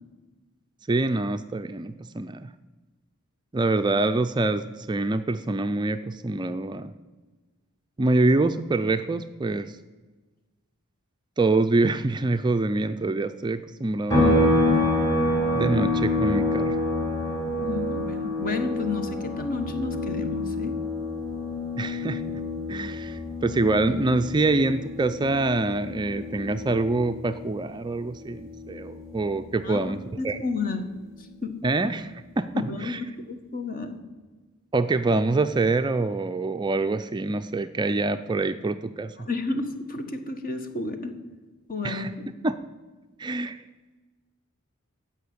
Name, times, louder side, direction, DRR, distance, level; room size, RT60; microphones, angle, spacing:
voice 1, 0.9-2.5 3.5-6.9 8.0-9.8 11.4-14.5 15.5-16.8 21.8-22.2 22.7-30.0 30.2-30.4 31.6-33.0 34.7-39.1 41.8-42.1 42.4-42.6 43.2-43.6, right 2 dB, 20° right, 9 dB, 0.4 m, -25 dB
sound 1, 14.1-27.6 28.0-30.2, left 2 dB, 15° left, 4.6 m, -27 dB
voice 2, 17.6-20.7 29.6-29.8 30.2-30.8 31.4-31.5 32.5-34.0 39.2-41.1 41.7-42.3, left 3 dB, 40° left, 7 dB, 1.4 m, -31 dB
15.5 x 5.7 x 9.5 m, 1.3 s
head